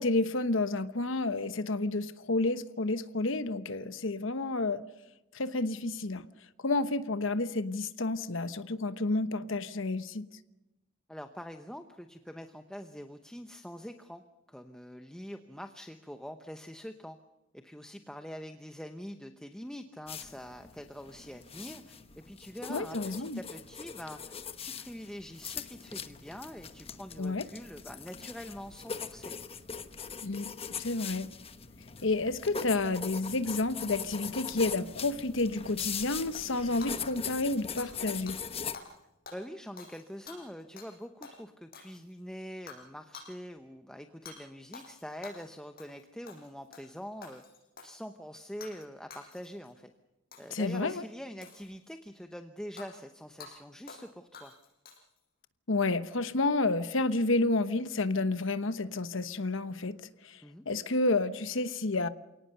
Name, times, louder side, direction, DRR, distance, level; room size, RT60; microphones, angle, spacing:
voice 1, 0.0-4.8 5.3-6.3 6.6-10.2 22.7-23.4 27.2-27.5 30.2-30.5 30.8-31.3 32.0-38.4 50.5-51.0 55.7-60.0 60.2-60.4 60.7-62.1, left 2 dB, 65° left, 12 dB, 1.1 m, -30 dB
voice 2, 11.1-14.2 14.5-17.2 17.5-29.3 39.3-47.4 47.8-49.9 50.4-54.5 60.4-60.7, equal, 5° left, 6 dB, 0.9 m, -44 dB
sound 1, 20.1-38.8, left 6 dB, 30° left, 1.1 m, -41 dB
Hammer / Shatter, 36.8-38.0 38.3-38.4 38.7-39.0 39.2-40.9 41.2-41.4 41.7-42.2 42.7-42.8 43.1-43.3 44.2-44.4 44.7-45.5 45.8-46.0 46.3-46.9 47.2-48.0 48.6-48.8 49.1-49.7 50.3-50.6 51.4-52.0 52.8-52.9 53.4-53.5 53.9-54.1 54.3-55.2, left 5 dB, 45° left, 6.4 m, -49 dB
28.0 x 18.0 x 6.7 m, 1.0 s
head